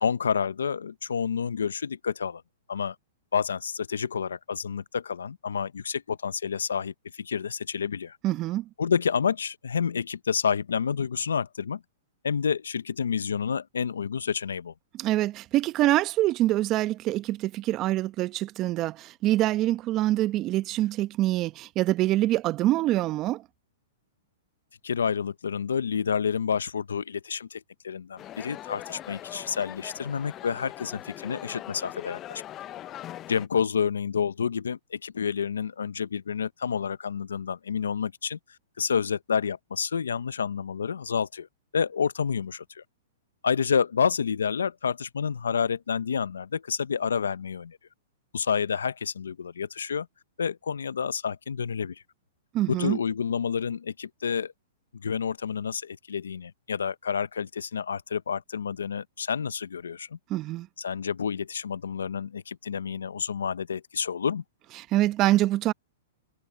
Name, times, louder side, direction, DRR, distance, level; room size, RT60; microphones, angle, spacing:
voice 1, 0.0-2.4 2.7-3.0 3.3-8.2 8.8-11.8 12.2-14.7 24.8-32.4 33.3-38.4 38.8-41.5 41.7-42.8 43.4-47.8 48.3-50.1 50.4-52.0 52.7-54.5 54.9-60.2 60.8-64.4, left 6 dB, 90° left, 0.7 m, -29 dB
voice 2, 8.2-8.6 15.0-23.4 52.5-53.0 60.3-60.7 64.9-65.7, right 15 dB, 35° right, 1.0 m, -25 dB
sound 1, 28.2-33.5, left 13 dB, 30° left, 0.5 m, -41 dB
hypercardioid pair, 130°, 0 cm